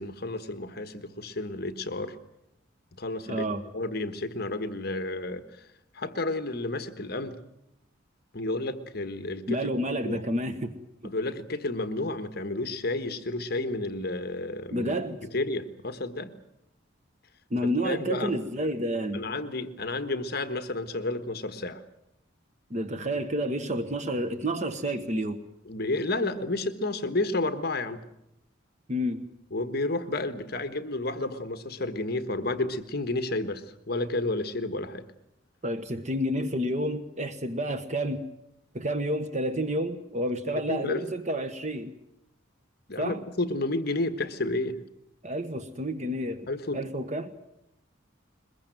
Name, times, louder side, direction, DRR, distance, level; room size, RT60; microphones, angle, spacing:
voice 1, 0.0-2.2 3.0-3.4 3.7-5.7 5.9-7.4 8.3-9.7 10.0-10.2 11.0-14.9 15.3-16.3 17.8-18.3 19.1-21.8 25.6-28.0 29.5-35.0 40.5-41.0 42.9-44.8 46.5-46.8, left 2 dB, 50° left, 1.4 m, -31 dB
voice 2, 3.3-3.6 9.5-10.7 11.0-11.1 14.7-15.2 17.5-19.3 22.7-25.4 28.9-29.2 35.6-38.2 38.7-41.9 43.0-43.2 45.2-46.5 46.7-47.3, equal, 35° right, 1.2 m, -30 dB
22.5 x 21.5 x 9.1 m
head